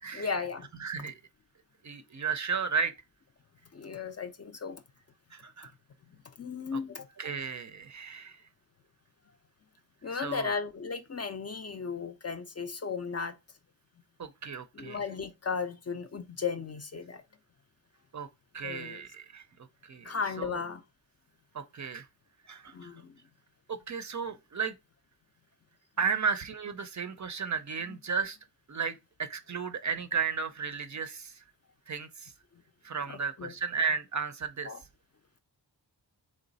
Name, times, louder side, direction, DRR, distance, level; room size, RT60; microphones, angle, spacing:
voice 1, 0.1-0.7 3.7-4.8 6.4-7.1 10.0-13.3 14.7-17.2 18.6-19.0 20.0-20.8 22.7-23.1 33.1-33.5 34.7-34.8, left 5 dB, 35° left, 0.4 m, -35 dB
voice 2, 0.8-1.1 1.8-2.9 5.3-5.7 6.7-6.8 7.2-8.4 10.1-10.5 14.2-15.0 18.1-18.3 18.5-19.4 19.8-20.6 21.5-22.1 22.5-22.9 23.7-24.8 26.0-28.4 28.7-31.4 31.9-32.3 32.8-34.7, right 6 dB, 45° right, 0.4 m, -34 dB
3.9 x 3.2 x 3.9 m
wide cardioid pair, 120°, 44 cm